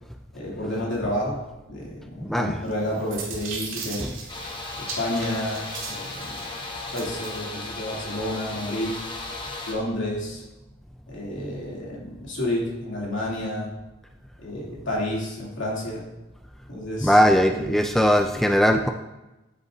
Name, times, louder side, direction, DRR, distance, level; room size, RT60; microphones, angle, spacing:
voice 1, 0.3-1.4 1.7-4.1 4.8-6.4 6.9-8.9 9.7-10.4 11.1-13.7 14.4-16.1 16.7-17.2 17.5-17.8, left 1 dB, 65° left, -4 dB, 2.8 m, -30 dB
voice 2, 2.2-2.6 4.0-4.1 17.0-18.9, equal, ahead, 5 dB, 0.3 m, -20 dB
sound 1, 2.7-7.4, right 4 dB, 80° right, 1.9 m, -38 dB
sound 2, 4.3-9.7, left 2 dB, 25° left, 1.1 m, -36 dB
9.9 x 8.6 x 2.7 m, 1.0 s
head